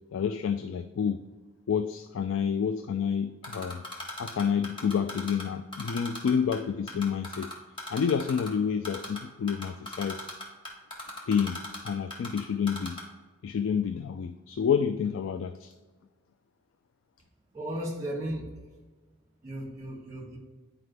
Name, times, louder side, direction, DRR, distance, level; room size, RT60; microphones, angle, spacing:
voice 1, 0.1-1.2 1.7-3.8 4.2-7.5 7.9-10.3 11.3-13.0 13.4-15.7, left 7 dB, 65° left, 10 dB, 0.3 m, -29 dB
Typing, 3.4-5.4 5.7-6.6 6.9-8.5 8.8-9.2 9.5-12.4 12.7-13.0, left 2 dB, 25° left, 1.4 m, -37 dB
voice 2, 17.5-18.6 19.4-20.4, right 1 dB, 15° right, -2 dB, 2.0 m, -35 dB
9.5 x 4.9 x 3.3 m, 1.3 s
head